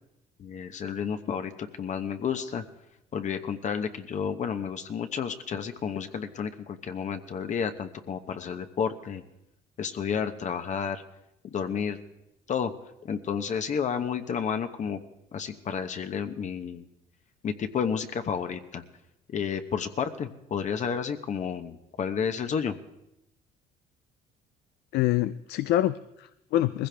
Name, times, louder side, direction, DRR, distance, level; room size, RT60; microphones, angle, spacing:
voice 1, 0.4-2.6 3.1-9.2 9.8-11.0 11.4-12.0 12.5-12.7 13.0-15.0 15.3-16.8 17.4-18.8 19.3-22.7, left 7 dB, 45° left, 8 dB, 0.9 m, -31 dB
voice 2, 24.9-26.9, left 14 dB, 75° left, 14 dB, 0.4 m, -26 dB
20.5 x 15.5 x 3.4 m, 0.87 s
cardioid pair, 110°, 17 cm